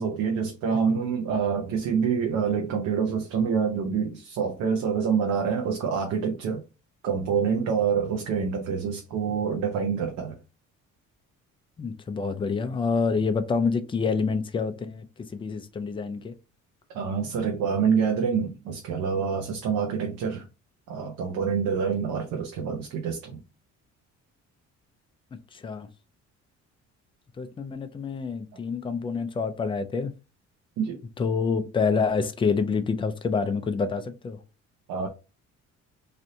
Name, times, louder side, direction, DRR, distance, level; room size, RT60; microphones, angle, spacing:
voice 1, 0.0-6.6 7.0-10.4 16.9-20.5 20.9-23.4 30.8-31.0 34.9-35.1, right 6 dB, 85° right, 0.8 m, -26 dB
voice 2, 11.8-15.0 15.3-16.3 25.5-25.9 27.4-30.1 31.2-34.4, left 5 dB, 20° left, 0.4 m, -27 dB
3.3 x 2.6 x 2.7 m
cardioid pair, 115°, 29 cm